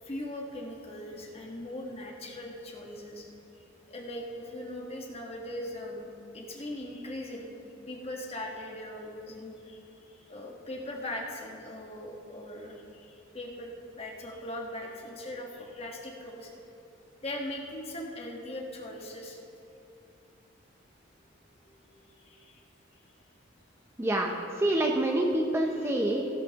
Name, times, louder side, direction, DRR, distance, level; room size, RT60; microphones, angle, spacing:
voice 1, 0.0-3.3 3.9-7.5 7.9-9.8 10.3-16.5 17.2-19.4 21.6-22.6, left 1 dB, 30° left, 0 dB, 1.3 m, -40 dB
voice 2, 24.0-26.3, right 1 dB, 15° right, 1 dB, 0.6 m, -27 dB
16.0 x 11.5 x 2.9 m, 2.7 s
head